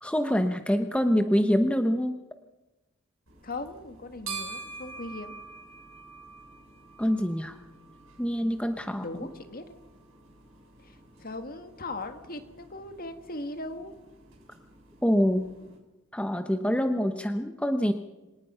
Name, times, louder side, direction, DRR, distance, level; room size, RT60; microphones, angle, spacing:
voice 1, 0.0-2.2 7.0-7.6 8.2-9.0 15.0-15.5 16.1-17.9, equal, 5° left, 7 dB, 0.9 m, -25 dB
sound 1, 3.3-15.8, right 4 dB, 60° right, 6.7 m, -47 dB
voice 2, 3.4-5.4 9.0-9.7 10.8-13.9, left 2 dB, 40° left, 8 dB, 1.8 m, -39 dB
25.5 x 18.5 x 5.7 m, 1.1 s
head